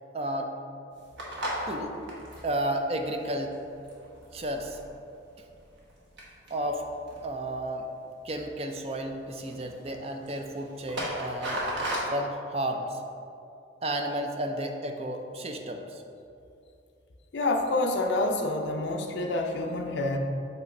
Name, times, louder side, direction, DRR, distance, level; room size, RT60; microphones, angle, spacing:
voice 1, 0.1-0.5 1.7-2.0 2.4-3.5 4.3-4.8 6.5-6.8 7.2-7.9 8.2-11.6 12.1-13.0 13.8-16.0, right 1 dB, 30° right, 4 dB, 0.5 m, -32 dB
sound 1, 0.9-4.9 5.4-5.9 6.2-7.5 8.1-8.7 9.0-9.2 9.4-12.0, right 1 dB, 65° right, 1.5 m, -37 dB
voice 2, 17.3-20.2, left 2 dB, 65° left, 3 dB, 0.6 m, -27 dB
8.1 x 3.1 x 5.4 m, 2.6 s
head